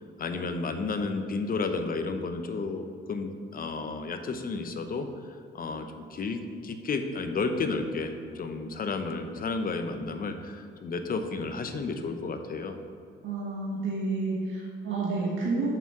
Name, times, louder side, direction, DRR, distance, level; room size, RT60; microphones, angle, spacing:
voice 1, 0.2-5.1 5.5-12.8, left 4 dB, 45° left, 7 dB, 0.9 m, -32 dB
voice 2, 13.2-15.7, right 3 dB, 75° right, -5 dB, 1.6 m, -30 dB
6.9 x 5.9 x 6.1 m, 2.5 s
cardioid pair, 90°, 20 cm